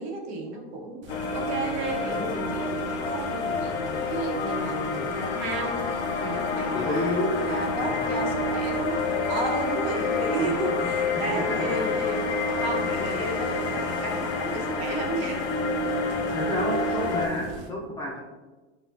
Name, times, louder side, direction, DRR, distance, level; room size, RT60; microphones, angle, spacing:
voice 1, 0.0-12.2 12.6-15.5 17.0-17.2, right 2 dB, 65° right, 1 dB, 1.1 m, -33 dB
sound 1, 1.0-17.7, right 2 dB, 35° right, 0.7 m, -46 dB
sound 2, 1.1-17.3, left 3 dB, 70° left, 0.6 m, -28 dB
voice 2, 6.7-7.3 7.9-8.0 9.1-9.2 9.9-11.4 16.3-18.2, left 1 dB, 10° left, -3 dB, 0.5 m, -31 dB
6.1 x 2.3 x 2.5 m, 1.2 s
supercardioid pair, 120°, 34 cm